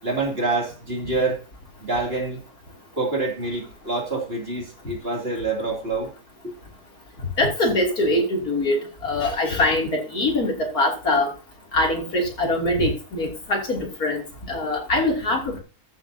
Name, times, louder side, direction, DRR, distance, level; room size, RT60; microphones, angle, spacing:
voice 1, 0.0-1.4 1.8-2.4 2.9-6.1, right 3 dB, 40° right, 0 dB, 3.2 m, -26 dB
voice 2, 7.4-11.3 11.7-14.2 14.5-15.6, left 1 dB, 65° left, 0 dB, 3.5 m, -23 dB
14.5 x 9.0 x 2.8 m, 0.33 s
omnidirectional pair, 1.7 m